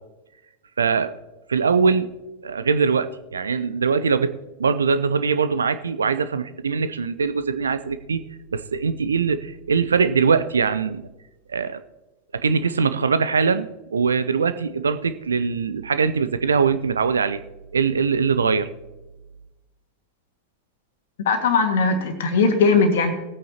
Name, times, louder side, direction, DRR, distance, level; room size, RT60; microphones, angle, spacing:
voice 1, 0.8-1.1 1.5-2.1 2.4-8.2 8.5-11.1 11.5-11.8 12.3-17.4 17.7-18.7, right 5 dB, 70° right, 13 dB, 0.5 m, -22 dB
voice 2, 21.3-23.1, left 4 dB, 55° left, 5 dB, 1.8 m, -19 dB
19.5 x 9.2 x 2.9 m, 1.1 s
figure-of-eight pair, 90°, 0 cm